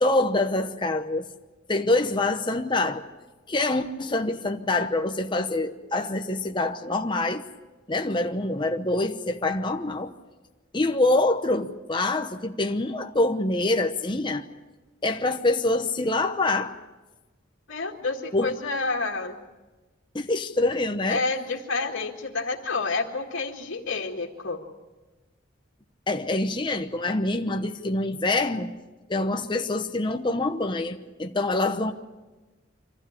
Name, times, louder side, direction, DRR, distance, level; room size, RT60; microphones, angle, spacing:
voice 1, 0.0-1.3 1.7-3.0 3.5-7.4 7.9-10.1 10.7-14.4 15.0-16.7 18.3-18.5 20.1-21.2 26.1-28.7 29.1-31.9, left 2 dB, 25° left, 0.9 m, -25 dB
voice 2, 17.7-19.4 21.1-24.6, left 3 dB, 90° left, 2.0 m, -29 dB
24.5 x 15.5 x 10.0 m
head